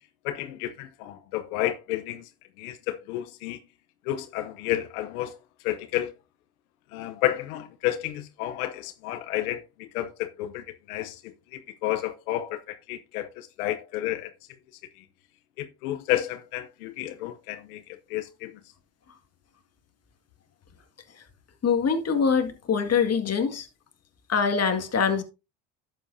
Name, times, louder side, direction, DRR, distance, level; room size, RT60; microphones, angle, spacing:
voice 1, 0.2-2.3 2.6-3.6 4.1-5.4 5.6-6.1 6.9-14.3 15.0-15.1 15.6-18.6, left 14 dB, 90° left, 0.8 m, -31 dB
voice 2, 21.6-23.7 24.3-25.2, left 6 dB, 35° left, 2.0 m, -24 dB
11.5 x 7.9 x 2.7 m
supercardioid pair, 80°, 42 cm